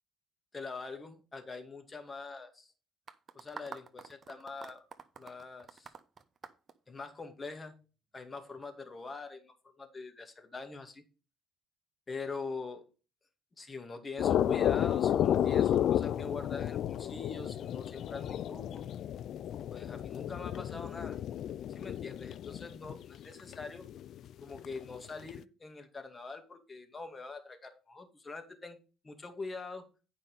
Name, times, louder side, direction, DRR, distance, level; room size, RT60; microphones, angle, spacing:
voice 1, 0.5-2.7 3.3-4.8 5.2-5.9 6.9-7.7 8.1-11.0 12.1-12.9 13.6-18.8 19.7-21.2 21.7-23.8 24.4-28.8 29.0-29.8, left 4 dB, 30° left, 6 dB, 2.2 m, -43 dB
sound 1, 3.1-7.5, right 5 dB, 35° right, 1.1 m, -48 dB
sound 2, 14.2-23.2 23.5-24.2 24.5-25.0 25.3-25.4, left 10 dB, 60° left, 0.4 m, -32 dB
9.2 x 5.3 x 5.0 m, 0.33 s
hypercardioid pair, 60°, 0 cm